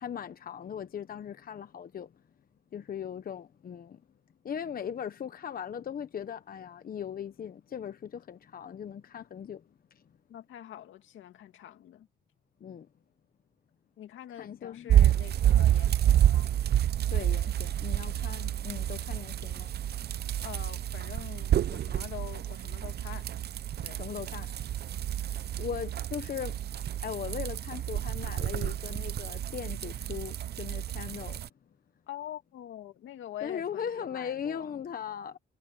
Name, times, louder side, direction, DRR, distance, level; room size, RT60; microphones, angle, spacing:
voice 1, 0.0-2.1 2.7-4.0 4.4-9.6 9.9-10.0 12.6-12.9 14.4-14.9 17.1-19.7 23.9-24.5 25.6-26.6 27.0-31.4 33.4-35.4, left 8 dB, 45° left, 1.1 m, -39 dB
voice 2, 10.3-12.1 14.0-16.5 20.4-23.3 23.8-24.1 32.1-34.8, left 12 dB, 75° left, 2.3 m, -45 dB
sound 1, 14.9-31.5, right 11 dB, 55° right, 0.7 m, -29 dB
cardioid pair, 90°, 20 cm